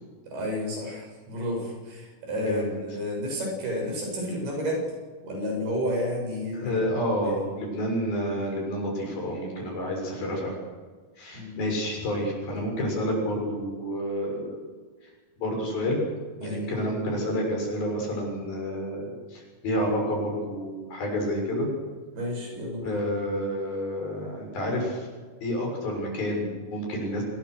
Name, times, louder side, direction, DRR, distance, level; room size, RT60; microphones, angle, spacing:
voice 1, 0.3-2.6 2.9-4.8 5.2-6.8 11.3-11.7 12.5-12.6 16.4-16.8 22.1-23.0, left 1 dB, 85° right, 0 dB, 9.7 m, -31 dB
voice 2, 2.4-2.8 6.5-10.6 11.2-14.6 15.4-16.0 16.4-21.7 22.8-25.1 25.4-27.2, equal, 70° left, 0 dB, 8.5 m, -29 dB
26.0 x 21.0 x 6.7 m, 1.4 s
omnidirectional pair, 4.4 m